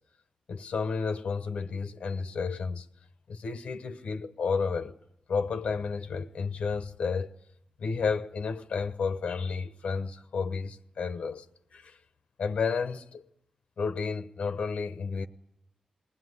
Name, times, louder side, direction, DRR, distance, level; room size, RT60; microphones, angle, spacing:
voice 1, 0.5-2.9 3.3-5.0 5.3-7.3 7.8-11.4 11.7-12.0 12.4-13.2 13.8-15.3, left 5 dB, 85° left, 0.9 m, -31 dB
20.5 x 18.5 x 9.7 m
wide cardioid pair, 105°, 2 cm